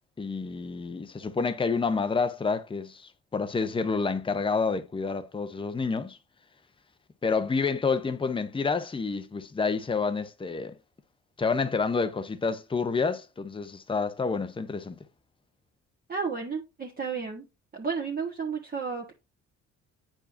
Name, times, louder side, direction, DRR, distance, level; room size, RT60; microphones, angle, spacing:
voice 1, 0.2-6.2 7.2-10.7 11.4-15.0, left 4 dB, 15° left, 0.7 m, -29 dB
voice 2, 16.1-17.5 17.7-19.1, right 5 dB, 30° right, 1.3 m, -32 dB
8.7 x 4.8 x 2.6 m
cardioid pair, 90°, 30 cm